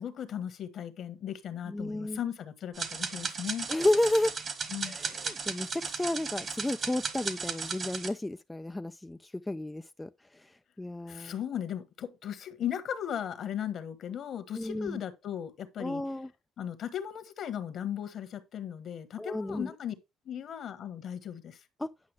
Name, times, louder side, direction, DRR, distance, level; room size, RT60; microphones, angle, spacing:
voice 1, 0.0-3.7 4.7-5.0 11.1-16.0 16.6-19.9 20.2-21.6, left 9 dB, 55° left, 1.4 m, -37 dB
voice 2, 1.7-2.2 3.7-4.3 4.9-10.1 10.8-11.3 14.5-15.0 15.8-16.3 19.2-19.7 21.8-21.9, left 1 dB, 10° left, 0.4 m, -31 dB
sound 1, 2.7-8.1, right 5 dB, 45° right, 1.7 m, -36 dB
9.7 x 5.6 x 3.4 m
supercardioid pair, 75°, 0 cm